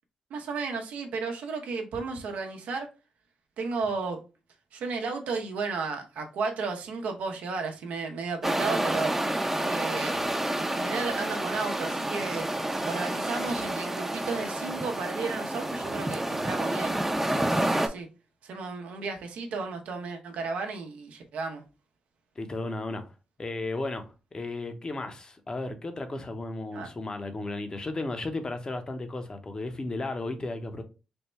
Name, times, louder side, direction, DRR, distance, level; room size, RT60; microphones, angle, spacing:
voice 1, 0.3-2.9 3.6-4.2 4.7-9.1 9.6-10.2 10.6-12.5 12.9-17.0 17.5-18.1 18.4-21.6 26.7-26.9, right 4 dB, 80° right, 0.8 m, -33 dB
sound 1, 8.4-17.9, right 1 dB, 10° right, 0.6 m, -29 dB
voice 2, 22.4-23.0 23.4-24.0 24.3-30.8, left 2 dB, 35° left, 0.8 m, -34 dB
3.5 x 2.2 x 4.2 m
cardioid pair, 65°, 2 cm